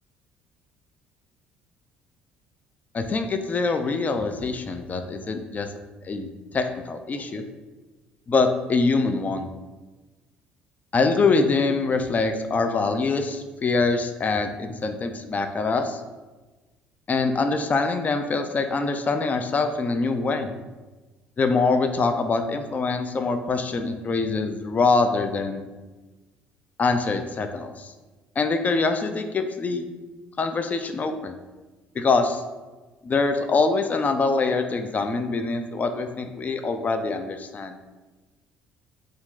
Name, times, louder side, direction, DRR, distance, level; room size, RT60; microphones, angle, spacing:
voice 1, 2.9-5.7 6.0-6.3 6.5-7.4 8.3-9.5 10.9-16.0 17.1-20.5 21.4-25.6 26.8-27.9 28.4-29.8 30.4-31.3 32.0-32.4 33.0-37.8, left 4 dB, 30° left, 7 dB, 0.3 m, -24 dB
2.6 x 2.4 x 3.6 m, 1.2 s
hypercardioid pair, 55°, 5 cm